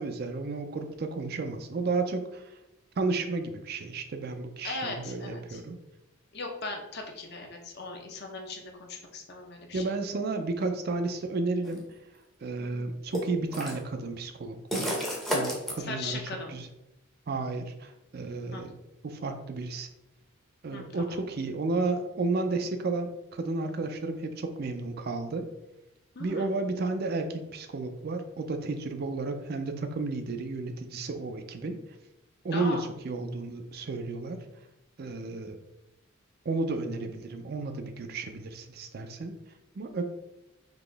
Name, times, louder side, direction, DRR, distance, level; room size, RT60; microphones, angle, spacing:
voice 1, 0.0-2.5 3.0-5.8 9.7-11.8 12.4-15.0 15.3-16.2 16.5-16.7 17.3-18.8 19.0-19.9 20.6-25.5 26.2-31.8 32.4-34.4 35.0-35.6 36.5-39.4 39.8-40.0, right 3 dB, 45° right, 7 dB, 0.4 m, -32 dB
voice 2, 4.6-5.6 6.3-10.0 12.6-12.8 15.8-16.5 18.5-18.7 20.7-21.2 26.1-26.5 32.5-32.9, left 3 dB, 50° left, 2 dB, 0.7 m, -39 dB
sound 1, 11.6-11.8 13.1-13.8 14.7-15.7, equal, ahead, 0.6 m, -30 dB
4.0 x 2.9 x 3.3 m, 0.91 s
head